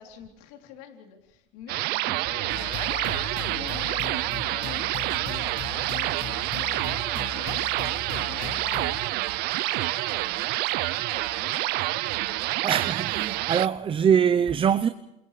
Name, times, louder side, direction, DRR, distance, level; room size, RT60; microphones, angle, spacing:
voice 1, 0.0-12.5, left 8 dB, 75° left, 3.6 m, -48 dB
sound 1, 1.7-13.7, right 19 dB, 65° right, 0.6 m, -28 dB
sound 2, 2.5-9.1, left 10 dB, 50° left, 1.5 m, -38 dB
sound 3, 2.7-13.6, equal, 5° left, 4.8 m, -48 dB
voice 2, 12.6-14.9, right 8 dB, 30° right, 0.9 m, -23 dB
28.5 x 28.0 x 3.4 m
supercardioid pair, 100°, 18 cm